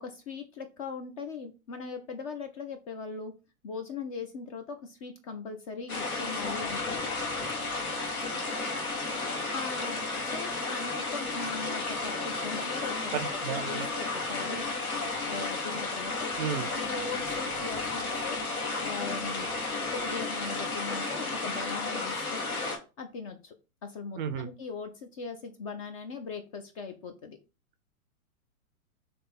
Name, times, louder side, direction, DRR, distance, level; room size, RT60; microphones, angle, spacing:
voice 1, 0.0-3.3 3.6-7.1 9.5-13.1 13.5-14.7 15.3-16.3 16.7-18.4 18.8-19.5 19.9-22.5 23.0-23.5 23.8-27.4, left 5 dB, 25° left, 6 dB, 0.4 m, -40 dB
sound 1, 5.9-22.8, left 3 dB, 85° left, 1.6 m, -33 dB
voice 2, 8.2-8.6 13.1-13.9 16.4-16.7 24.2-24.5, right 7 dB, 35° right, 10 dB, 0.5 m, -34 dB
3.4 x 3.3 x 4.1 m, 0.30 s
hypercardioid pair, 110°, 43 cm